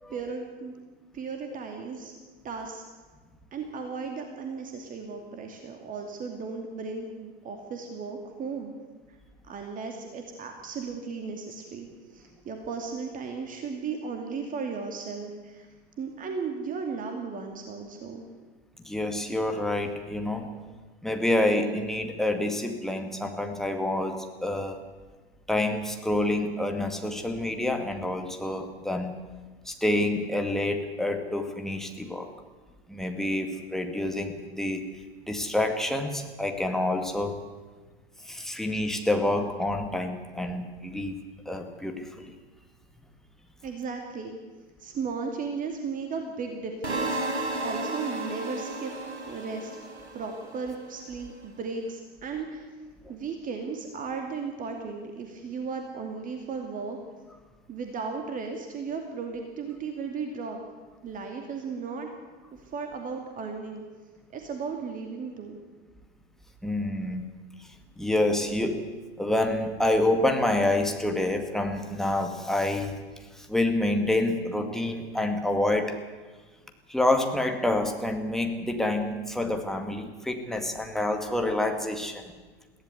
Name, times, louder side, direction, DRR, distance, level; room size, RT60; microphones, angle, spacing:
voice 1, 0.1-0.7 1.1-2.1 2.4-2.8 3.5-8.7 9.1-9.2 9.4-15.7 16.0-18.2 43.6-44.4 44.8-47.2 47.6-48.9 49.3-49.7 50.1-52.7 53.1-57.0 57.7-60.6 61.0-62.1 62.6-63.8 64.3-65.6, right 5 dB, 25° right, 4 dB, 2.5 m, -35 dB
voice 2, 18.8-20.5 21.0-24.8 25.5-29.1 29.7-32.3 32.9-34.8 35.3-37.4 38.2-41.2 41.5-42.3 66.6-67.3 68.0-68.8 69.2-73.0 73.4-76.0 76.9-82.3, left 1 dB, ahead, 4 dB, 2.1 m, -27 dB
sound 1, 46.8-50.9, right 2 dB, 75° right, 5.5 m, -33 dB
22.0 x 16.0 x 8.2 m, 1.3 s
figure-of-eight pair, 95°, 33 cm